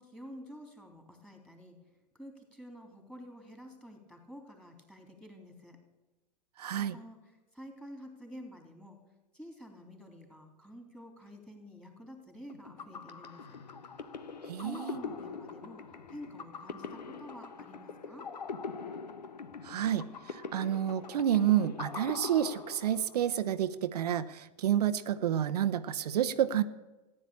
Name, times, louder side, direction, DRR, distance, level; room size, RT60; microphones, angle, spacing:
voice 1, 0.0-1.8 2.1-5.8 6.8-9.0 9.3-13.6 14.6-18.3, equal, 5° left, 4 dB, 3.5 m, -49 dB
voice 2, 6.6-6.9 14.5-15.0 19.6-26.6, right 10 dB, 70° right, 10 dB, 0.8 m, -29 dB
sound 1, 12.5-23.3, left 5 dB, 80° left, 1.3 m, -43 dB
14.5 x 9.9 x 8.5 m, 1.1 s
hypercardioid pair, 100°, 21 cm